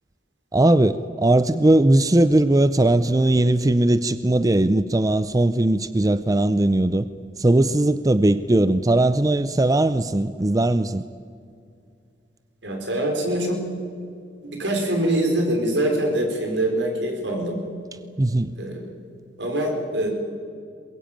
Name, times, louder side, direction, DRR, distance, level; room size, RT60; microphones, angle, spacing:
voice 1, 0.5-7.1 7.4-11.0 18.2-18.5, right 1 dB, 20° right, 13 dB, 0.5 m, -19 dB
voice 2, 12.6-13.6 14.4-17.6 18.6-18.9 19.4-20.1, right 1 dB, 75° right, 3 dB, 5.1 m, -24 dB
22.5 x 21.5 x 9.0 m, 2.3 s
head